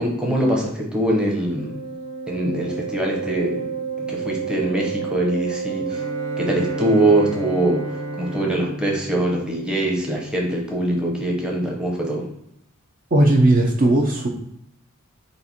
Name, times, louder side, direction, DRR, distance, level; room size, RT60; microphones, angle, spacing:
voice 1, 0.0-1.7 2.3-6.1 6.4-12.3, right 1 dB, 5° right, -1 dB, 0.8 m, -23 dB
Wind instrument woodwind instrument, 1.4-8.5, right 6 dB, 50° left, 0.3 m, -30 dB
Bowed string instrument, 5.9-10.6, left 1 dB, 70° right, 0.9 m, -34 dB
voice 2, 13.1-14.3, right 1 dB, 40° right, 0 dB, 0.6 m, -16 dB
4.1 x 2.5 x 4.2 m, 0.77 s
head